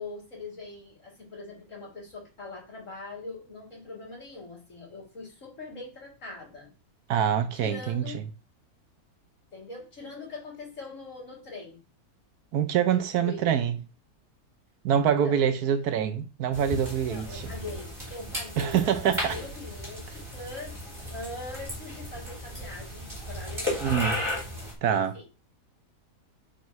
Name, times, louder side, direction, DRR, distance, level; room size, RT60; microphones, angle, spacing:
voice 1, 0.0-6.7 7.5-8.3 9.5-11.8 12.9-13.5 15.0-15.4 17.1-23.9 24.9-25.4, left 3 dB, 50° left, 3.2 m, -42 dB
voice 2, 7.1-8.1 12.5-13.8 14.8-17.5 18.6-19.3 23.8-24.2 24.8-25.2, right 8 dB, 70° right, 1.2 m, -25 dB
sound 1, 16.5-24.7, left 1 dB, 15° right, 2.9 m, -35 dB
9.1 x 4.6 x 3.1 m
omnidirectional pair, 1.7 m